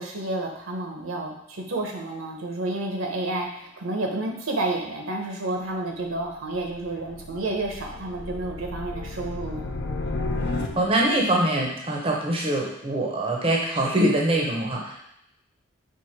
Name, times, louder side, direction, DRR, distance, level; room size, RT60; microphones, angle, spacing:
voice 1, 0.0-9.7, right 2 dB, 75° right, 1 dB, 0.8 m, -30 dB
sound 1, 6.0-11.2, left 2 dB, 55° left, 0.5 m, -33 dB
voice 2, 10.8-15.0, right 1 dB, 25° right, -1 dB, 0.6 m, -23 dB
4.6 x 2.6 x 4.3 m, 0.79 s
head